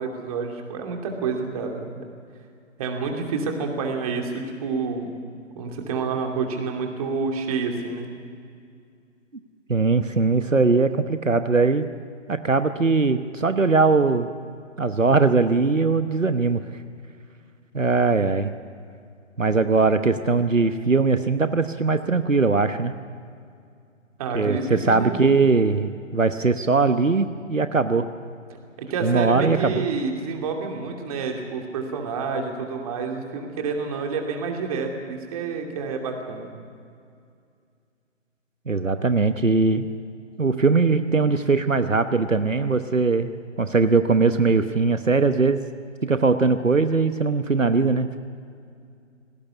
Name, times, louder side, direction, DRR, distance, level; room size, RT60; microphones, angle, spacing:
voice 1, 0.0-2.0 2.8-5.1 5.6-8.1 24.2-25.2 28.8-36.5, right 4 dB, 30° right, 2 dB, 2.7 m, -28 dB
voice 2, 9.7-11.9 12.3-14.3 14.8-16.6 17.7-18.5 19.4-22.9 24.3-28.1 29.0-29.9 38.7-39.9 40.4-43.3 43.6-45.6 46.0-48.2, right 4 dB, 90° right, 10 dB, 1.0 m, -20 dB
18.5 x 18.0 x 9.7 m, 2.3 s
figure-of-eight pair, 135°, 37 cm